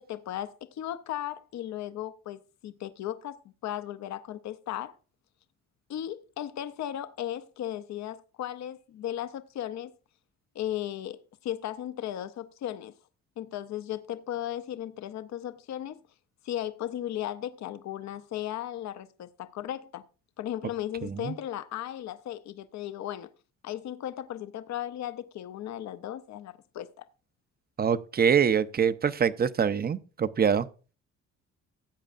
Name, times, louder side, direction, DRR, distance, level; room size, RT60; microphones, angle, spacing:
voice 1, 0.1-4.9 5.9-9.9 10.5-12.9 13.4-16.0 16.4-20.0 20.4-23.3 23.6-27.1, left 11 dB, 65° left, 0.7 m, -36 dB
voice 2, 21.0-21.4 27.8-30.7, right 7 dB, 30° right, 0.6 m, -25 dB
16.0 x 8.0 x 2.5 m
cardioid pair, 90°, 30 cm